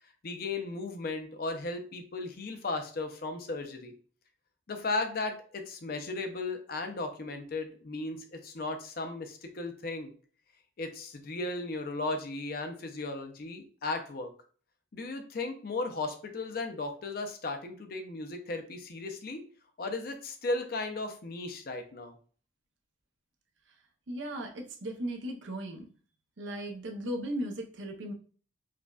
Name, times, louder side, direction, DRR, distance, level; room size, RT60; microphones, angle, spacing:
voice 1, 0.2-3.9 4.7-10.1 10.8-14.3 14.9-19.4 19.8-22.1, left 3 dB, 50° left, 6 dB, 0.5 m, -36 dB
voice 2, 24.1-25.9 26.4-28.1, right 1 dB, 75° right, 3 dB, 0.7 m, -36 dB
4.8 x 2.2 x 2.3 m, 0.42 s
head